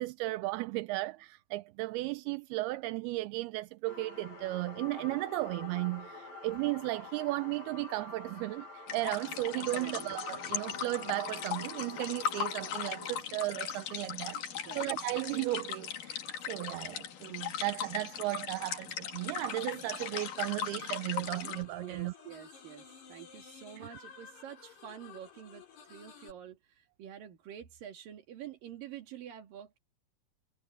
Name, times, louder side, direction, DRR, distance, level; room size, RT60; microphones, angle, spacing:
voice 1, 0.0-14.4 14.8-22.1 23.8-23.9, right 20 dB, 80° right, 2.5 m, -35 dB
sound 1, 3.9-13.2, left 3 dB, 40° left, 8.3 m, -47 dB
sound 2, 8.9-21.7, left 8 dB, 60° left, 3.3 m, -38 dB
sound 3, 19.2-26.3, left 7 dB, 80° left, 6.5 m, -53 dB
voice 2, 21.8-29.8, right 10 dB, 60° right, 3.8 m, -47 dB
omnidirectional pair, 4.7 m